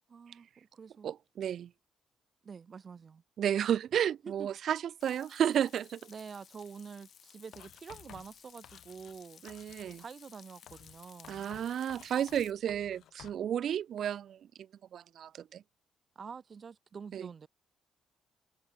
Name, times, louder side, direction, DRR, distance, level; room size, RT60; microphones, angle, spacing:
voice 1, 0.1-1.1 2.4-3.2 4.2-4.5 6.1-9.4 10.0-11.5 16.1-17.5, right 6 dB, 45° right, 1.0 m, -47 dB
voice 2, 1.0-1.7 3.4-6.0 9.4-10.0 11.3-14.4 14.9-15.6 17.1-17.3, right 9 dB, 65° right, 0.6 m, -32 dB
Frying (food), 5.0-12.5, left 8 dB, 60° left, 1.9 m, -57 dB
Writing, 7.5-9.2 9.5-10.0 10.7-13.4, left 11 dB, 75° left, 7.1 m, -55 dB
cardioid pair, 90°, 0 cm